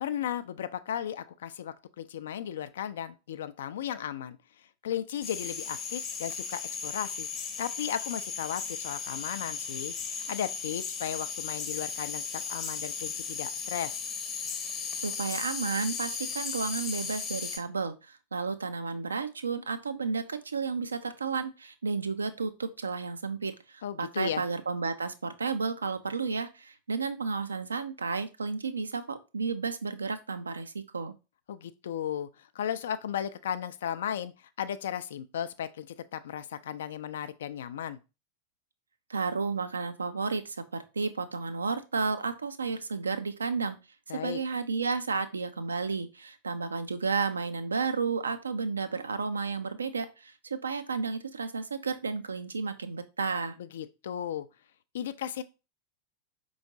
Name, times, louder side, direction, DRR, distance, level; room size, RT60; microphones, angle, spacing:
voice 1, 0.0-4.4 4.8-14.0 23.8-24.4 31.5-38.0 44.1-44.4 53.6-54.5 54.9-55.4, left 9 dB, 60° left, 0.4 m, -35 dB
sound 1, 5.2-17.6, left 5 dB, 30° left, 0.7 m, -36 dB
voice 2, 15.0-31.1 39.1-43.8 44.1-53.6, right 4 dB, 75° right, 0.4 m, -32 dB
5.0 x 3.1 x 2.6 m
figure-of-eight pair, 90°, 0 cm